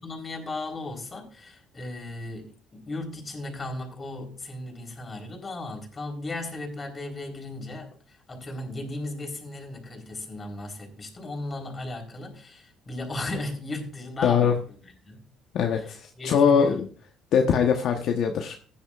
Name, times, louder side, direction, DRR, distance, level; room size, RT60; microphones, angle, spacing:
voice 1, 0.0-14.5 14.8-15.3 15.7-16.8, left 2 dB, 30° left, 4.1 m, -36 dB
voice 2, 14.2-14.5 15.5-16.9 17.3-18.6, left 7 dB, 65° left, 1.1 m, -22 dB
15.5 x 10.0 x 2.5 m
supercardioid pair, 75°, 0 cm